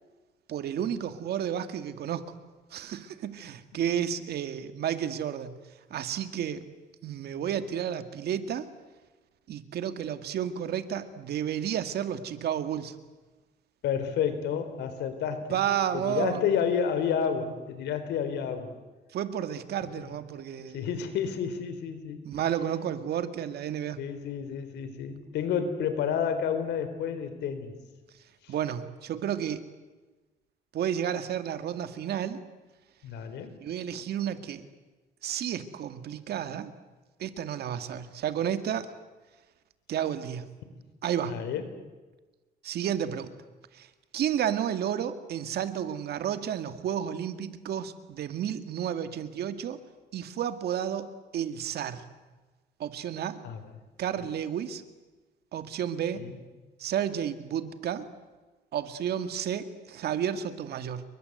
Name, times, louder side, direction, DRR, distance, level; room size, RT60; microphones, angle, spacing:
voice 1, 0.5-2.3 2.7-5.6 5.9-6.6 7.0-8.7 9.5-13.0 15.5-16.4 19.1-20.9 22.2-24.0 28.5-29.6 30.7-32.4 33.6-34.6 35.2-36.7 37.2-38.9 39.9-40.4 41.0-41.4 42.6-43.3 43.7-43.9 44.1-49.8 50.1-52.0 52.8-53.4 54.0-54.8 55.5-56.3 56.8-58.1 58.7-61.0, right 9 dB, 70° right, 10 dB, 2.1 m, -31 dB
voice 2, 13.8-15.6 15.9-18.7 20.7-22.2 24.0-27.7 33.0-33.5 41.2-41.6 53.4-53.6 54.2-54.3 56.2-56.4, left 7 dB, 90° left, 10 dB, 3.9 m, -30 dB
29.5 x 23.0 x 8.1 m, 1.2 s
cardioid pair, 120°, 17 cm